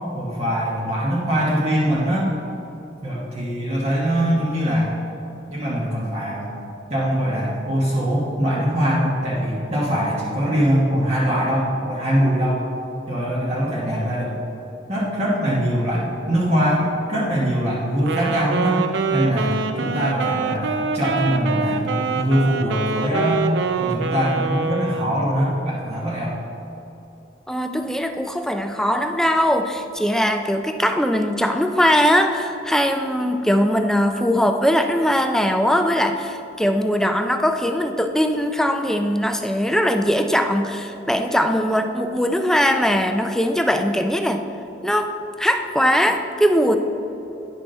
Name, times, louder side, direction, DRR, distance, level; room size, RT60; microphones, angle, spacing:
voice 1, 0.1-2.3 3.0-4.9 5.5-6.5 6.9-12.6 13.1-14.3 14.9-18.8 19.1-23.5 23.8-26.3, equal, 35° right, -7 dB, 1.1 m, -22 dB
Wind instrument woodwind instrument, 18.0-25.2, right 4 dB, 70° right, 0.4 m, -25 dB
voice 2, 27.5-44.4 44.8-45.1 45.4-46.8, equal, 5° left, 6 dB, 0.3 m, -20 dB
9.9 x 6.0 x 3.8 m, 2.9 s
head